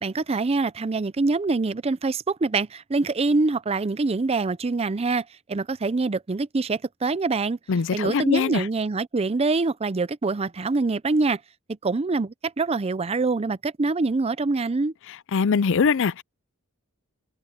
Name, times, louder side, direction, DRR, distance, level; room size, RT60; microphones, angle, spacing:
voice 1, 0.0-7.6 7.9-11.4 11.8-14.9, right 3 dB, 30° right, 0.5 m, -25 dB
voice 2, 7.7-8.7 15.3-16.2, left 5 dB, 60° left, 0.5 m, -22 dB
head